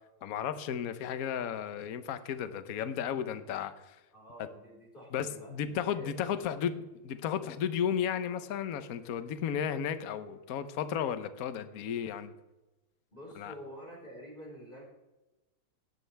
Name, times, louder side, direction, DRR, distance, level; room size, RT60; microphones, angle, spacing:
voice 1, 0.2-4.0 5.1-12.3 13.4-13.5, left 8 dB, 55° left, 1.1 m, -34 dB
voice 2, 4.1-6.8 13.1-14.8, equal, 20° left, 4.8 m, -49 dB
17.5 x 12.5 x 3.4 m
omnidirectional pair, 2.4 m